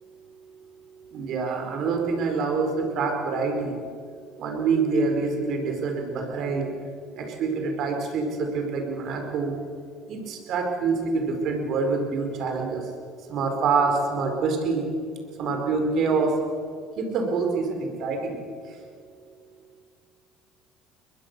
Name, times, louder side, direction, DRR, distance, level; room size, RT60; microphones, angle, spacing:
voice 1, 1.1-3.7 4.4-6.7 7.1-9.5 10.1-12.8 13.3-14.9 15.4-16.3 17.0-18.4, right 4 dB, 60° right, 3 dB, 4.5 m, -26 dB
22.0 x 21.0 x 6.8 m, 2.2 s
supercardioid pair, 80°, 0 cm